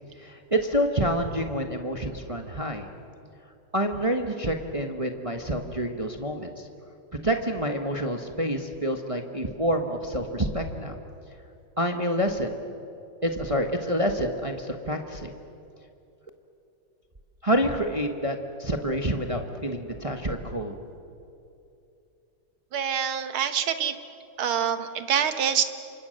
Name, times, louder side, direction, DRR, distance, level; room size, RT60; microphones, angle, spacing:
voice 1, 0.2-2.9 3.7-6.7 7.2-11.0 11.8-12.6 13.2-15.3 17.4-20.7, equal, 20° right, 5 dB, 1.0 m, -28 dB
voice 2, 22.7-23.9 24.4-25.6, right 8 dB, 75° right, 9 dB, 2.1 m, -25 dB
28.5 x 25.5 x 6.6 m, 2.7 s
omnidirectional pair, 2.3 m